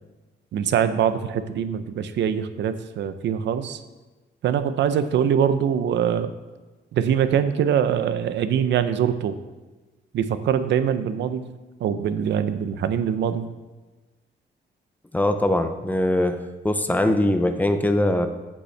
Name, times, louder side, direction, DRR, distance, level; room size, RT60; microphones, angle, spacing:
voice 1, 0.5-3.8 4.4-6.3 6.9-9.4 10.1-11.5 11.8-13.5, right 8 dB, 80° right, 11 dB, 0.6 m, -23 dB
voice 2, 15.1-18.3, left 1 dB, 10° left, 7 dB, 0.5 m, -22 dB
15.0 x 5.3 x 3.3 m, 1.2 s
wide cardioid pair, 150°, 18 cm